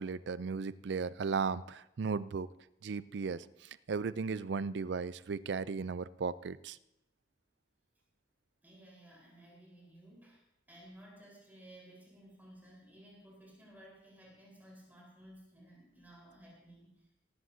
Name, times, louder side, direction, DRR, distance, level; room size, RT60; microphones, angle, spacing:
voice 1, 0.0-2.5 2.8-3.4 3.9-6.8, right 5 dB, 70° right, 16 dB, 0.4 m, -36 dB
voice 2, 8.6-10.4 10.7-17.1, right 1 dB, 10° right, -4 dB, 4.3 m, -56 dB
17.5 x 15.0 x 2.8 m, 0.84 s
head